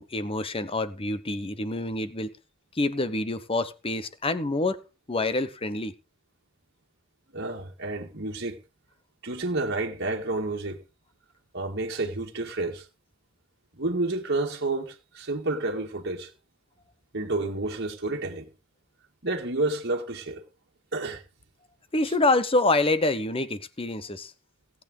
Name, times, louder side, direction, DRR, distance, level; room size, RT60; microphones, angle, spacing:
voice 1, 0.0-2.3 2.7-4.8 5.1-5.9 21.9-24.3, left 2 dB, 25° left, 1.0 m, -26 dB
voice 2, 7.3-8.6 9.2-10.8 11.5-12.9 13.8-16.3 17.1-18.5 19.2-20.4 20.9-21.2, right 2 dB, 55° right, 1.9 m, -30 dB
18.0 x 8.7 x 3.9 m
head